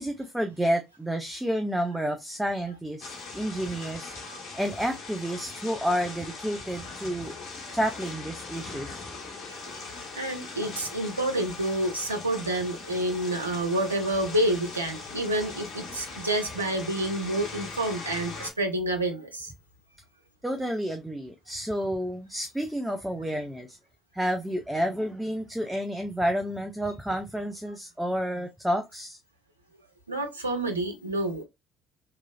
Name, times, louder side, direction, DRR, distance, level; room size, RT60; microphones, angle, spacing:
voice 1, 0.0-4.1 4.5-7.3 7.7-9.1 20.4-23.8 24.1-29.2, equal, 5° right, 0.5 m, -30 dB
sound 1, 3.0-18.5, left 4 dB, 50° left, 1.1 m, -40 dB
voice 2, 9.5-9.8 10.1-19.5 30.1-31.4, right 1 dB, 90° right, 0.4 m, -29 dB
3.0 x 2.3 x 2.3 m
figure-of-eight pair, 50°, 0 cm